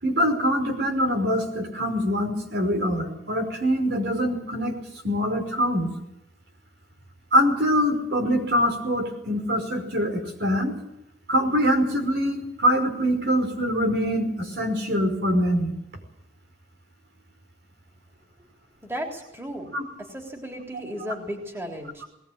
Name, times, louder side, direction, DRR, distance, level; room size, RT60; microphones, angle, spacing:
voice 1, 0.0-4.8 5.0-5.9 7.3-10.8 11.3-15.8 19.7-19.8 21.0-21.1, equal, 70° right, 4 dB, 5.3 m, -24 dB
voice 2, 18.8-19.7 20.1-22.0, equal, 15° right, 1 dB, 3.5 m, -35 dB
20.5 x 19.5 x 8.8 m, 0.81 s
head